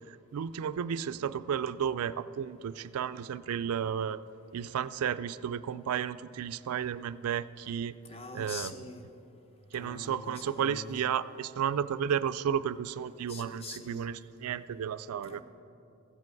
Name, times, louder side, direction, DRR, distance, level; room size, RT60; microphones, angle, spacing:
voice 1, 0.0-4.2 4.5-7.9 8.3-8.7 9.7-15.4, right 8 dB, 85° right, 15 dB, 0.3 m, -33 dB
voice 2, 8.0-9.1 9.7-11.1 13.3-14.2 15.2-15.4, left 3 dB, 25° left, 6 dB, 0.7 m, -44 dB
15.5 x 7.6 x 4.6 m, 2.8 s
head